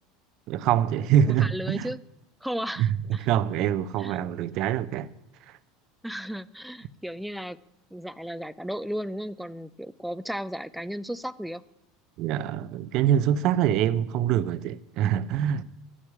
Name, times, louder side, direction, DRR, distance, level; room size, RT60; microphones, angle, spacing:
voice 1, 0.5-1.9 2.8-2.9 3.2-5.1 12.2-15.6, right 10 dB, 55° right, 0.7 m, -24 dB
voice 2, 1.2-2.0 2.4-3.3 4.0-4.2 6.0-7.6 7.9-11.6, equal, ahead, 0.6 m, -34 dB
11.5 x 7.3 x 9.8 m
hypercardioid pair, 90°, 0 cm